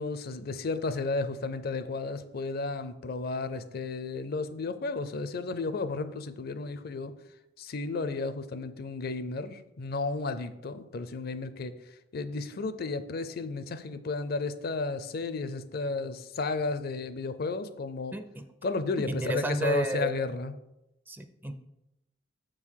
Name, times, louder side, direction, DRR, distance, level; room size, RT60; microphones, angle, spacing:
voice 1, 0.0-7.1 7.6-11.7 12.1-18.1 18.6-20.5, left 3 dB, 55° left, 12 dB, 0.5 m, -33 dB
voice 2, 18.1-18.4 19.1-20.1 21.1-21.5, equal, 10° right, 9 dB, 0.4 m, -32 dB
7.3 x 3.8 x 6.3 m, 0.90 s
head